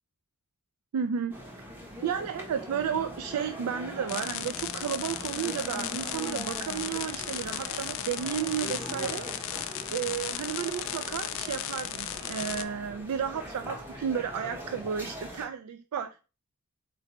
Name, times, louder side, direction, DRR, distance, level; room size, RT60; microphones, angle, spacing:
voice 1, 0.9-1.4 2.0-9.2 9.9-16.2, right 8 dB, 80° right, 10 dB, 0.3 m, -32 dB
sound 1, 1.3-15.4, equal, 10° right, 0.9 m, -42 dB
sound 2, 4.1-12.6, left 12 dB, 60° left, 0.4 m, -36 dB
sound 3, 5.7-12.6, equal, 65° right, 1.7 m, -47 dB
4.2 x 4.0 x 3.0 m, 0.33 s
head